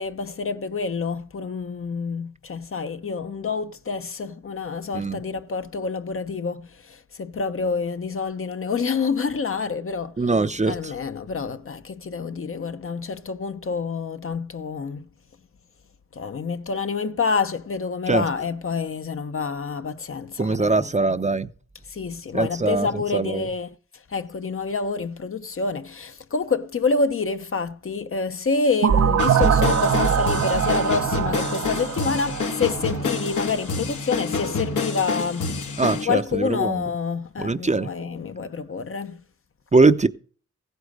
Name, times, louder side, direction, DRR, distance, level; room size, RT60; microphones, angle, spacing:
voice 1, 0.0-10.3 10.7-15.1 16.1-20.9 21.9-23.8 24.1-35.5 36.0-39.2, left 5 dB, 45° left, 0.8 m, -27 dB
voice 2, 10.2-10.7 18.1-18.2 20.4-21.5 22.3-23.4 35.8-36.8 37.4-37.9 39.7-40.1, right 3 dB, 25° right, 0.7 m, -21 dB
sound 1, 28.8-33.5, right 7 dB, 60° right, 0.7 m, -23 dB
sound 2, 29.2-36.0, left 4 dB, 85° left, 2.0 m, -28 dB
15.5 x 8.1 x 5.3 m
cardioid pair, 75°, 29 cm